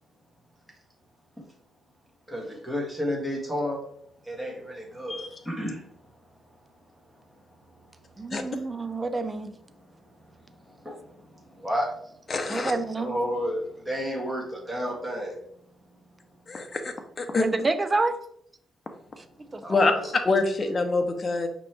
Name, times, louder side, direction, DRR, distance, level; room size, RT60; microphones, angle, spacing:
voice 1, 2.3-3.8 4.2-5.9 8.5-8.6 9.8-9.9 10.5-11.9 12.9-15.4 19.6-20.1, equal, 10° right, -2 dB, 1.6 m, -32 dB
voice 2, 8.2-9.5 12.5-13.2 17.4-18.2 19.2-19.3 19.5-19.9, right 3 dB, 25° right, 10 dB, 0.4 m, -28 dB
voice 3, 12.3-12.7 16.5-17.5 19.7-19.9 20.2-21.5, left 3 dB, 35° left, 5 dB, 0.7 m, -25 dB
5.2 x 2.9 x 3.4 m, 0.68 s
cardioid pair, 95°, 0 cm